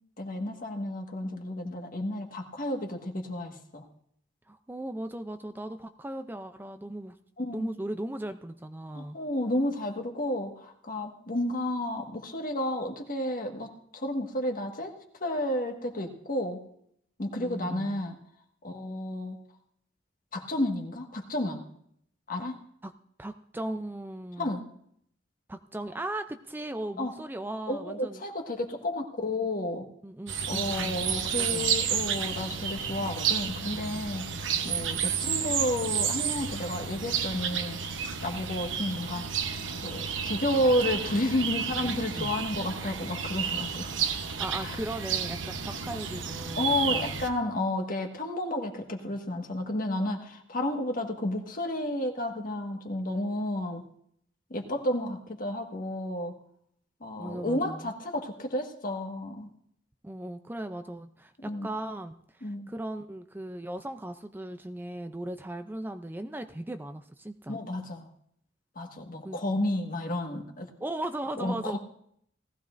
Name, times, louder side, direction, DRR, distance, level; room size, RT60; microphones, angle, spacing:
voice 1, 0.2-3.8 7.4-7.7 8.9-14.9 15.2-16.6 17.2-18.1 18.6-19.4 20.3-21.6 22.3-22.6 24.4-24.6 27.0-27.1 27.7-29.9 30.5-37.8 38.2-39.6 39.8-43.9 44.6-44.8 46.6-53.8 54.5-56.3 57.0-59.5 61.4-61.7 62.4-62.7 67.5-68.1 68.7-70.7 71.4-71.8, left 1 dB, 50° left, 3 dB, 1.7 m, -31 dB
voice 2, 4.5-7.2 7.5-9.2 17.4-18.0 22.8-22.9 23.2-24.5 25.5-28.2 30.0-31.7 42.2-42.3 44.2-47.2 57.2-57.9 60.0-67.6 69.2-69.6 70.8-71.8, right 1 dB, 10° right, 8 dB, 0.5 m, -37 dB
sound 1, 30.3-47.3, right 7 dB, 75° right, 1.0 m, -31 dB
19.0 x 15.0 x 2.6 m, 0.67 s
head